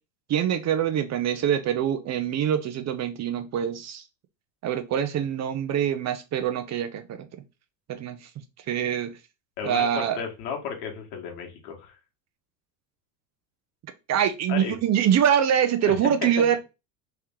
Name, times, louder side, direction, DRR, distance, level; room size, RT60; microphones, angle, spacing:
voice 1, 0.3-4.0 4.6-7.3 7.9-8.3 8.7-9.2 9.6-10.2 14.1-16.6, right 9 dB, 35° right, 0.5 m, -24 dB
voice 2, 9.6-12.0 14.5-14.8 15.8-16.1 16.4-16.6, left 6 dB, 80° left, 1.5 m, -34 dB
3.3 x 2.9 x 3.5 m
supercardioid pair, 95°, 48 cm